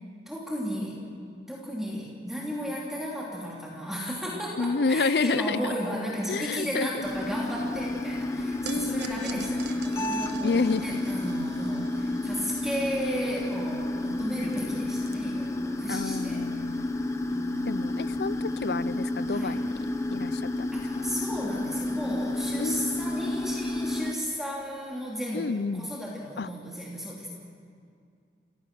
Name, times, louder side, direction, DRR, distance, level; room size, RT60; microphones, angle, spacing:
voice 1, 0.3-1.0 1.5-16.4 17.3-17.7 19.3-19.6 20.7-27.3, equal, ahead, -4 dB, 3.1 m, -34 dB
voice 2, 4.6-5.7 6.3-7.0 8.6-9.5 10.4-11.0 15.9-16.9 17.7-19.7 20.1-21.1 22.6-23.3 25.3-25.9 26.4-26.5, left 4 dB, 70° left, 17 dB, 0.5 m, -30 dB
sound 1, 7.0-24.1, left 2 dB, 15° left, 1.0 m, -31 dB
sound 2, 8.6-15.0, right 7 dB, 85° right, 1.5 m, -47 dB
28.0 x 17.0 x 6.2 m, 2.3 s
head